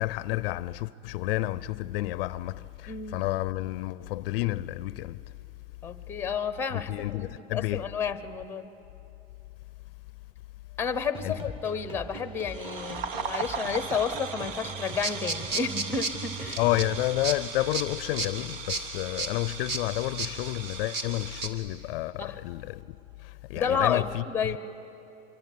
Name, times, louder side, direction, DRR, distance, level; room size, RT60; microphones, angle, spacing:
voice 1, 0.0-5.3 6.7-7.9 11.2-11.4 16.6-24.6, left 17 dB, 60° left, 0.6 m, -30 dB
voice 2, 2.9-3.3 5.8-8.7 10.8-16.6 22.2-22.4 23.5-24.6, left 6 dB, 5° left, 0.8 m, -31 dB
sound 1, 11.1-17.2, right 3 dB, 15° right, 1.3 m, -42 dB
sound 2, 12.5-21.6, right 6 dB, 60° right, 1.5 m, -39 dB
sound 3, 14.9-21.5, right 3 dB, 35° right, 2.3 m, -35 dB
25.5 x 23.5 x 9.3 m
supercardioid pair, 155°, 32 cm